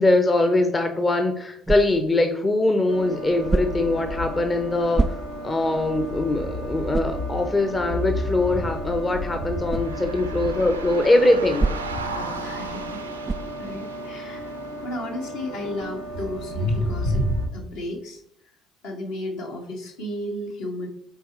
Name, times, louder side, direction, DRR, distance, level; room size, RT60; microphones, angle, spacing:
voice 1, 0.0-11.8, left 2 dB, 25° left, 6 dB, 0.7 m, -22 dB
sound 1, 1.6-2.2 3.5-4.0 4.9-5.6 6.1-6.2 6.9-7.3 9.7-9.9 11.6-12.1 13.2-13.6, right 3 dB, 20° right, 0.3 m, -26 dB
sound 2, 2.9-17.5, equal, 90° left, 1.2 m, -31 dB
sound 3, 9.7-14.9, right 3 dB, 80° right, 0.5 m, -37 dB
voice 2, 12.1-13.0 13.6-17.2 17.5-18.2 18.8-20.9, left 1 dB, 65° left, 0 dB, 1.4 m, -34 dB
7.9 x 4.0 x 3.3 m, 0.72 s
figure-of-eight pair, 50°, 0 cm